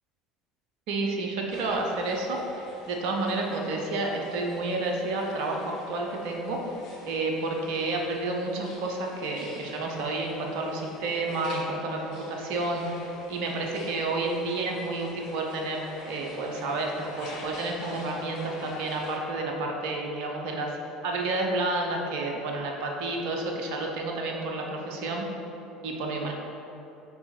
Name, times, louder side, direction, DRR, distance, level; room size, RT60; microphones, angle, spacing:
voice 1, 0.9-6.6 7.1-20.8 21.0-25.3 25.8-26.3, right 2 dB, 60° right, 1 dB, 0.9 m, -30 dB
sound 1, 1.5-19.2, left 2 dB, 55° left, 1.1 m, -46 dB
5.9 x 5.0 x 4.4 m, 2.9 s
figure-of-eight pair, 65°, 0 cm